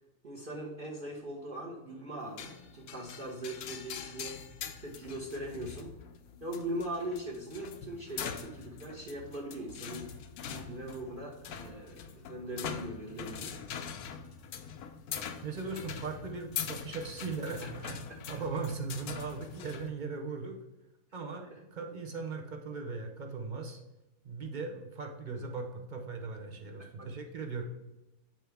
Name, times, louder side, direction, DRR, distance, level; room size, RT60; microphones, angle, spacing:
voice 1, 0.2-4.4 4.8-6.0 6.4-10.1 10.5-13.6 17.6-17.9 21.5-21.6 26.8-27.1, right 1 dB, 40° right, -2 dB, 1.0 m, -40 dB
sound 1, 2.4-19.9, left 7 dB, 75° left, 1.1 m, -43 dB
voice 2, 15.4-18.0 18.3-20.6 21.1-23.8 24.2-27.6, right 4 dB, 55° right, 4 dB, 0.5 m, -38 dB
8.9 x 4.5 x 3.4 m, 0.99 s
omnidirectional pair, 1.7 m